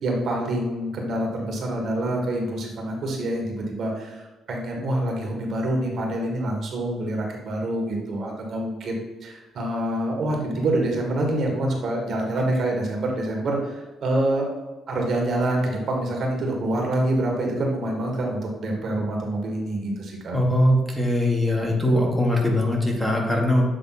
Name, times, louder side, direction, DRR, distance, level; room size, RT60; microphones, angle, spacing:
voice 1, 0.0-14.5 14.9-20.4, right 1 dB, 60° right, 0 dB, 1.7 m, -26 dB
voice 2, 20.3-23.7, left 1 dB, 5° left, -2 dB, 1.5 m, -21 dB
7.7 x 3.5 x 4.1 m, 1.2 s
cardioid pair, 95°, 0 cm